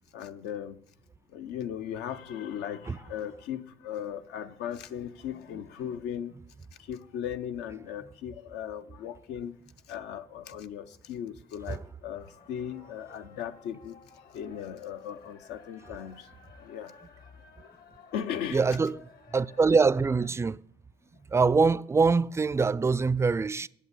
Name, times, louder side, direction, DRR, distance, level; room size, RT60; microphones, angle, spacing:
voice 1, 0.1-0.8 1.3-6.3 6.8-9.5 9.9-14.0 14.3-16.3 16.6-16.9 18.1-18.6, left 9 dB, 85° left, 0.6 m, -37 dB
sound 1, 12.1-20.3, left 6 dB, 60° left, 1.2 m, -54 dB
voice 2, 18.5-19.0 19.3-20.6 21.3-23.7, right 4 dB, 15° right, 0.3 m, -24 dB
8.5 x 6.8 x 8.0 m
supercardioid pair, 70°, 17 cm